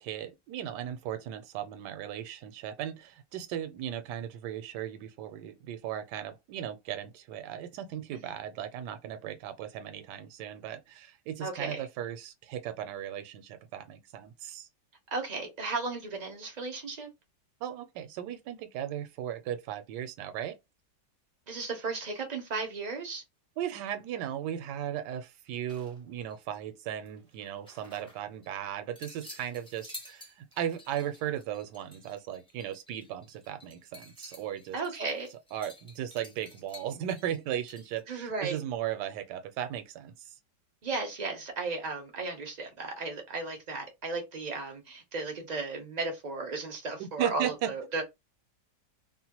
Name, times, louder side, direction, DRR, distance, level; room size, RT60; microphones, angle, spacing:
voice 1, 0.0-14.7 17.6-20.6 23.6-34.8 35.5-40.3 47.0-47.7, right 10 dB, 75° right, 1.2 m, -36 dB
voice 2, 11.4-11.8 15.1-17.1 21.5-23.2 34.7-35.3 38.1-38.6 40.8-48.0, right 3 dB, 50° right, 0.5 m, -35 dB
sound 1, 25.7-26.6 26.9-28.5 28.9-38.0, left 2 dB, 5° left, 0.5 m, -51 dB
3.0 x 2.2 x 2.9 m
omnidirectional pair, 1.9 m